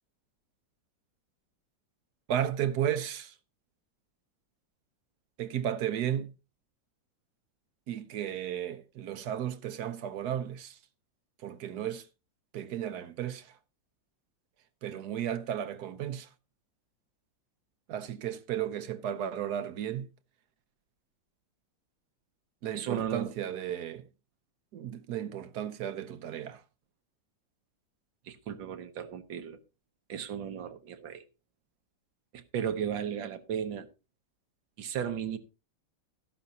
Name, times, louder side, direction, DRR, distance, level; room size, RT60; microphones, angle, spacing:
voice 1, 2.3-3.3 5.4-6.3 7.9-10.8 11.4-12.0 12.5-13.5 14.8-16.3 17.9-20.1 22.6-24.0 24.7-26.6, right 10 dB, 65° right, 1.2 m, -34 dB
voice 2, 22.8-23.3 28.3-29.6 30.1-31.2 32.3-33.9 34.8-35.4, right 8 dB, 85° right, 1.7 m, -35 dB
13.0 x 11.5 x 2.7 m
omnidirectional pair, 2.0 m